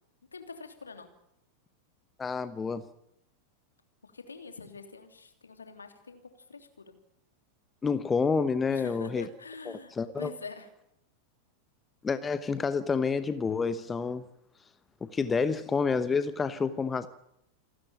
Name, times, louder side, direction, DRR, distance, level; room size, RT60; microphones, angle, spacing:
voice 1, 0.3-1.1 4.0-6.9 8.7-10.7, left 4 dB, 75° left, 7 dB, 3.1 m, -45 dB
voice 2, 2.2-2.8 7.8-9.3 9.7-10.3 12.0-14.2 15.0-17.1, left 5 dB, 15° left, 13 dB, 1.0 m, -29 dB
28.5 x 13.0 x 9.2 m, 0.78 s
figure-of-eight pair, 90°, 0 cm